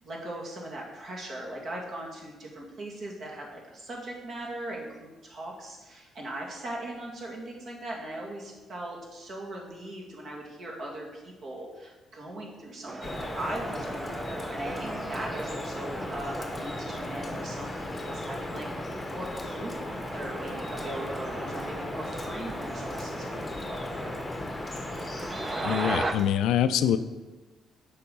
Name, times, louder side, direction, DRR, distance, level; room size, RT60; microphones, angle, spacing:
voice 1, 0.0-17.7 18.0-19.7 20.1-24.2, right 1 dB, 60° right, -2 dB, 2.0 m, -39 dB
sound 1, 12.9-26.1, right 3 dB, 30° right, 0.6 m, -37 dB
Drip, 13.0-26.3, left 2 dB, 25° left, 0.7 m, -37 dB
voice 2, 25.6-27.0, left 10 dB, 85° left, 12 dB, 0.3 m, -24 dB
6.9 x 5.0 x 5.3 m, 1.2 s
cardioid pair, 90°, 0 cm